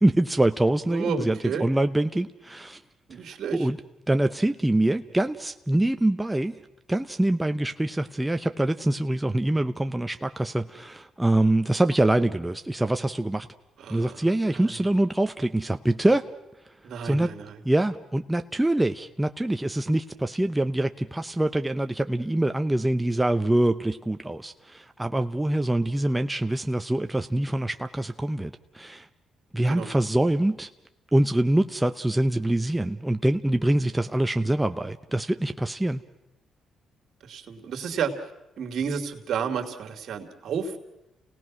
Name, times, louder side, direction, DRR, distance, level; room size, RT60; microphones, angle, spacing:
voice 1, 0.0-2.8 3.5-3.8 4.1-6.5 6.9-13.5 13.9-16.3 17.0-17.3 17.6-29.1 29.5-30.7 31.1-36.0, right 1 dB, 10° right, 7 dB, 0.7 m, -24 dB
voice 2, 0.9-1.7 3.1-3.7 13.8-14.7 16.8-17.6 29.7-29.9 37.2-38.3 38.6-40.8, right 6 dB, 65° right, 6 dB, 2.6 m, -32 dB
30.0 x 18.5 x 6.1 m, 0.93 s
cardioid pair, 90°, 0 cm